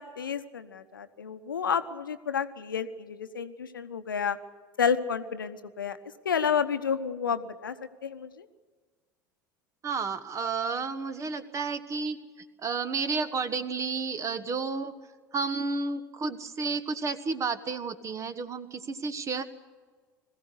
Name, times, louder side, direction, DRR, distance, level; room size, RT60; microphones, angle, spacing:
voice 1, 0.0-4.4 4.8-6.0 6.2-7.7 8.0-8.5, left 7 dB, 75° left, 10 dB, 1.0 m, -30 dB
voice 2, 9.8-14.9 15.3-19.4, right 4 dB, 30° right, 13 dB, 1.4 m, -31 dB
21.5 x 15.5 x 8.3 m, 1.5 s
figure-of-eight pair, 75°, 11 cm